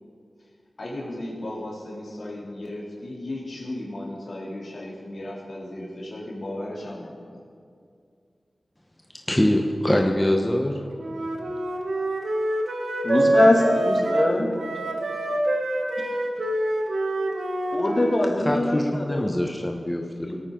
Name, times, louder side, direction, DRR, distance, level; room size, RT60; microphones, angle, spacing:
voice 1, 0.8-7.5 17.6-17.8, left 1 dB, 70° left, -4 dB, 3.2 m, -35 dB
voice 2, 9.3-10.8 18.4-20.4, left 1 dB, 15° left, 2 dB, 1.1 m, -24 dB
Wind instrument woodwind instrument, 11.0-18.3, right 1 dB, 80° right, 1.3 m, -26 dB
voice 3, 13.0-14.5 16.0-16.1 17.7-19.4 20.1-20.4, left 1 dB, 45° left, -1 dB, 2.5 m, -22 dB
18.0 x 9.0 x 3.9 m, 2.3 s
cardioid pair, 45°, 0 cm